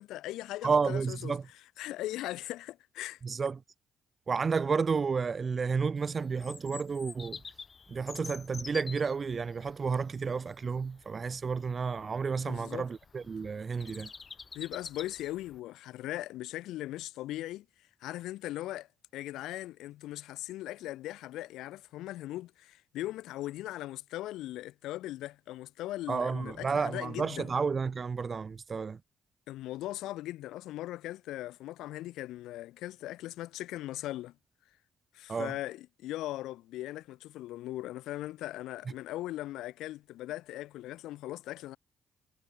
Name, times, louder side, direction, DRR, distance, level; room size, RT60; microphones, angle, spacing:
voice 1, 0.0-1.4 1.8-3.2 12.5-12.9 14.5-17.6 18.0-18.9 19.1-27.5 29.5-34.3 35.1-41.8, left 15 dB, 75° left, 1.0 m, -39 dB
voice 2, 0.6-1.4 3.2-3.6 4.3-7.4 7.9-14.1 26.1-29.0 35.3-35.6, right 5 dB, 45° right, 1.6 m, -31 dB
Bird vocalization bird call bird song, 6.0-15.6, left 5 dB, 45° left, 5.4 m, -48 dB
hypercardioid pair, 50°, 0 cm